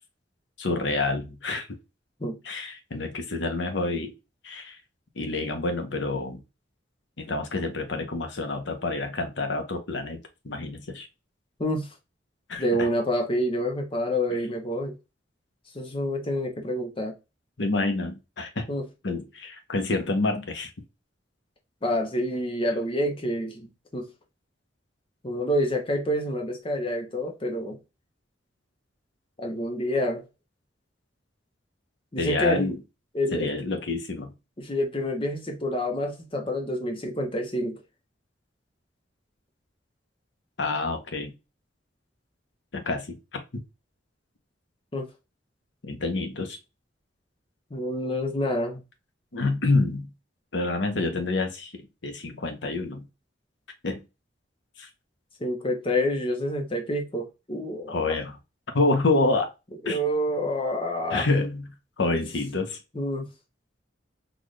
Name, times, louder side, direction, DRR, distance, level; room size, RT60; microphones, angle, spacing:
voice 1, 0.6-1.7 2.4-4.1 4.4-4.8 5.2-6.4 7.2-11.1 12.5-12.9 17.6-18.6 19.0-20.7 32.2-32.8 33.3-34.3 40.6-41.3 42.7-43.6 45.8-46.6 49.3-50.1 50.5-53.0 53.8-54.0 54.8-54.9 57.9-58.4 58.7-59.5 59.8-60.0 61.1-61.7 62.0-62.8, left 3 dB, 70° left, 0.8 m, -28 dB
voice 2, 12.6-15.0 15.7-17.1 18.7-18.9 21.8-24.1 25.2-27.8 29.4-30.2 32.1-32.7 33.1-33.5 34.6-37.8 44.9-45.1 47.7-48.8 55.4-58.2 59.8-61.3 62.9-63.3, equal, 30° left, 0.8 m, -28 dB
4.0 x 2.4 x 3.1 m
head